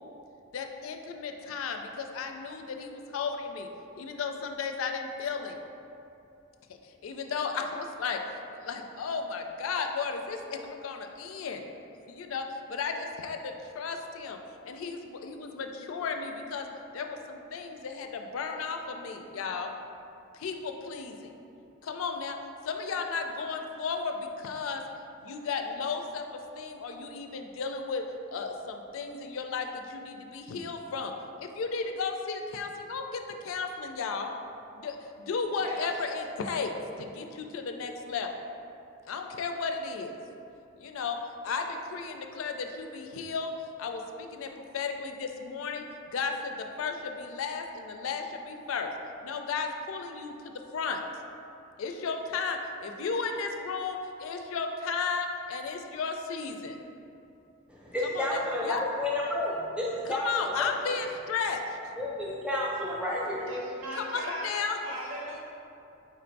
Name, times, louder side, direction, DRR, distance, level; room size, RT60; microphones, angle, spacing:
voice 1, 0.5-3.7 3.9-5.6 7.0-8.2 8.6-11.6 12.1-14.4 14.6-16.7 16.9-19.7 20.3-21.4 21.8-22.4 22.6-24.8 25.2-28.0 28.3-31.1 31.4-34.3 34.8-36.7 37.0-38.3 39.1-40.2 40.8-41.2 41.4-43.5 43.8-48.9 49.2-51.0 51.8-56.8 58.0-58.8 60.1-61.8 63.9-64.8, left 5 dB, 80° left, 4 dB, 0.4 m, -34 dB
voice 2, 57.7-61.0 62.0-63.5, left 1 dB, 5° right, -5 dB, 0.5 m, -31 dB
voice 3, 63.5-65.4, equal, 80° right, -3 dB, 0.8 m, -38 dB
4.4 x 2.5 x 4.4 m, 2.7 s
head